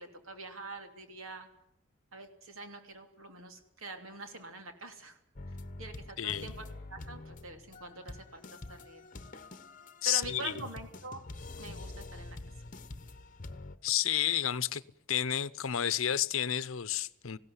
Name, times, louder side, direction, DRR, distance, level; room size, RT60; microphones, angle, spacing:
voice 1, 0.0-1.5 2.1-5.2 5.8-6.6 6.9-9.0 10.0-11.2 11.5-12.4, right 2 dB, 80° right, 3.1 m, -45 dB
sound 1, 5.4-13.8, left 2 dB, 40° left, 1.0 m, -46 dB
voice 2, 6.2-6.5 10.0-10.5 13.8-14.8 15.1-17.4, left 11 dB, 80° left, 0.7 m, -31 dB
19.5 x 16.5 x 9.7 m
head